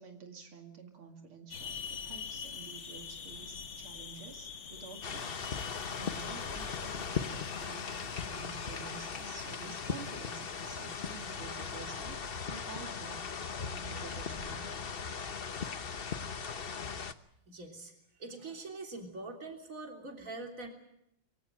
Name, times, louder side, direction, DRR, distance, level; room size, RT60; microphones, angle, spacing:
voice 1, 0.0-12.2 12.5-13.3 13.6-14.9, right 5 dB, 85° right, 4 dB, 3.2 m, -50 dB
sound 1, 1.5-13.5, left 7 dB, 70° left, 2.1 m, -47 dB
sound 2, 5.0-17.1, left 6 dB, 45° left, 0.8 m, -38 dB
voice 2, 17.5-20.7, right 2 dB, 40° right, 3 dB, 3.8 m, -44 dB
23.5 x 17.0 x 9.0 m, 0.78 s
omnidirectional pair, 2.3 m